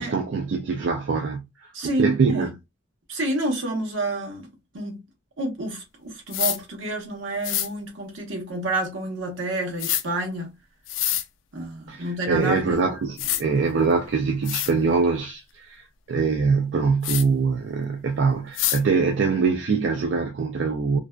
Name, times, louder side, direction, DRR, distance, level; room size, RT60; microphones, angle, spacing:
voice 1, 0.0-1.5 1.8-2.5 11.9-21.0, right 5 dB, 70° right, 0.4 m, -23 dB
voice 2, 1.7-2.5 3.1-4.5 4.7-5.0 5.4-10.5 11.5-12.8, right 1 dB, 90° right, 0.9 m, -29 dB
sound 1, 6.3-6.6 7.4-7.7 9.8-10.0 10.9-11.2 12.7-12.8 13.2-13.4 14.1-14.2 14.5-14.7 17.0-17.2 18.6-18.8, left 12 dB, 80° left, 0.3 m, -25 dB
2.5 x 2.1 x 2.3 m
head